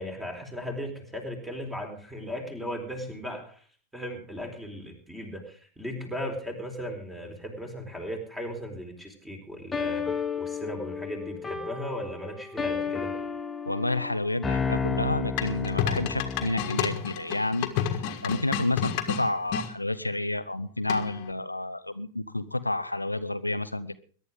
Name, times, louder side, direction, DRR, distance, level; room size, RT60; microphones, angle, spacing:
voice 1, 0.0-3.6 3.9-13.1, equal, 5° right, 3 dB, 4.1 m, -37 dB
sound 1, 9.7-16.7, left 5 dB, 15° left, 1.0 m, -32 dB
voice 2, 13.7-17.7 18.2-24.0, left 2 dB, 85° left, 12 dB, 0.6 m, -30 dB
sound 2, 15.4-19.7 20.9-21.3, left 9 dB, 45° left, 1.7 m, -30 dB
22.0 x 11.0 x 3.7 m, 0.43 s
figure-of-eight pair, 90°, 0 cm